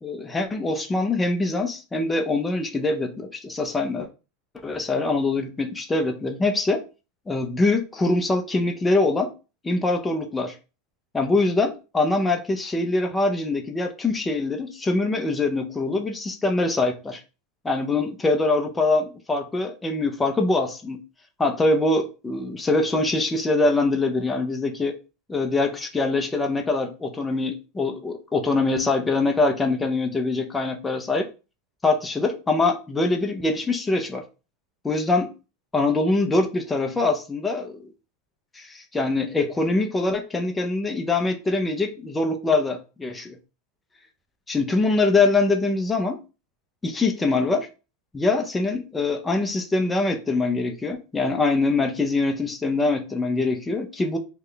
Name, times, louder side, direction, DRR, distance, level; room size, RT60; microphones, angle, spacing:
voice 1, 0.0-4.1 4.6-6.8 7.3-9.3 9.6-10.6 11.1-17.2 17.6-21.0 21.4-25.0 25.3-31.3 31.8-34.2 34.8-35.3 35.7-37.9 38.5-43.4 44.5-46.2 46.8-47.7 48.1-54.2, left 3 dB, 15° left, 0.6 m, -23 dB
3.2 x 2.3 x 3.7 m
supercardioid pair, 130°, 0 cm